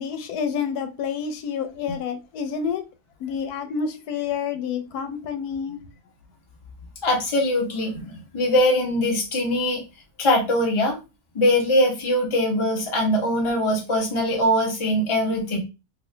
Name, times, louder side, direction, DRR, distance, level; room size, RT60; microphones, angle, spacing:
voice 1, 0.0-2.8 3.2-5.8, left 6 dB, 85° left, 1.1 m, -28 dB
voice 2, 7.0-9.8 10.2-11.0 11.3-15.6, left 1 dB, 25° left, 0.8 m, -22 dB
2.9 x 2.4 x 3.2 m
omnidirectional pair, 1.6 m